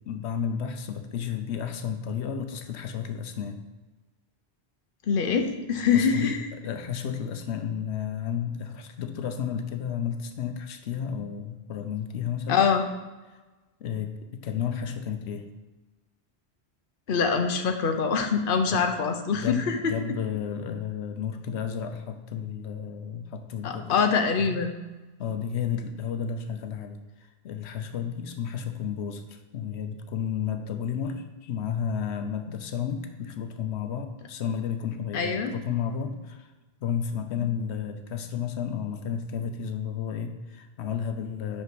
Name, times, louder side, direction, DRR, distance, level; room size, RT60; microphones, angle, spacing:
voice 1, 0.1-3.6 5.9-6.3 6.6-12.6 13.8-15.5 18.7-18.8 19.3-24.0 24.4-24.6 25.2-36.5 36.8-41.6, left 7 dB, 85° left, 7 dB, 0.9 m, -32 dB
voice 2, 5.1-6.5 12.5-12.8 17.1-19.9 23.6-24.7 35.1-35.5 37.4-37.5, left 6 dB, 55° left, 6 dB, 0.9 m, -24 dB
5.7 x 5.6 x 6.0 m, 1.2 s
omnidirectional pair, 1.1 m